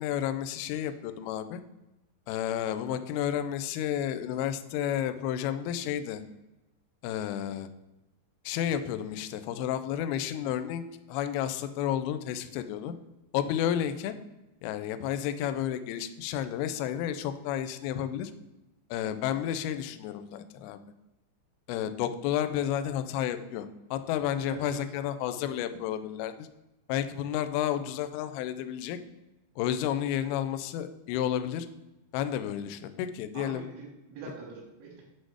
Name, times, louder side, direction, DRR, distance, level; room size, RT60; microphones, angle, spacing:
voice 1, 0.0-1.6 2.3-6.2 7.0-7.7 8.5-10.8 11.1-12.9 13.3-14.2 14.6-18.3 18.9-20.8 21.7-26.5 26.9-29.0 29.6-31.7 32.1-33.7, left 10 dB, 90° left, 10 dB, 2.2 m, -31 dB
voice 2, 24.4-24.8 33.3-35.0, right 4 dB, 85° right, -4 dB, 3.7 m, -44 dB
7.8 x 4.2 x 4.7 m, 0.97 s
omnidirectional pair, 5.0 m